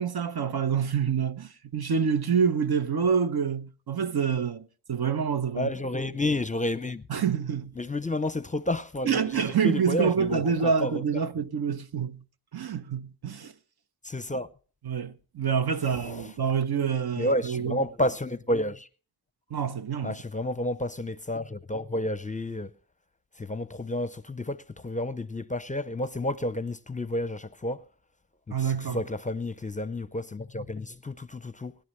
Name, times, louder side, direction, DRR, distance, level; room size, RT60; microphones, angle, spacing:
voice 1, 0.0-5.7 7.1-7.7 9.0-12.2 12.5-13.5 14.8-17.8 19.5-20.1 28.5-29.0, right 6 dB, 75° right, 1.0 m, -27 dB
voice 2, 5.5-7.1 7.8-11.0 14.0-14.5 15.8-16.3 17.1-18.9 20.0-22.7 23.4-27.8 28.5-31.8, left 1 dB, 20° left, 0.5 m, -31 dB
23.0 x 10.5 x 3.2 m
wide cardioid pair, 105°, 38 cm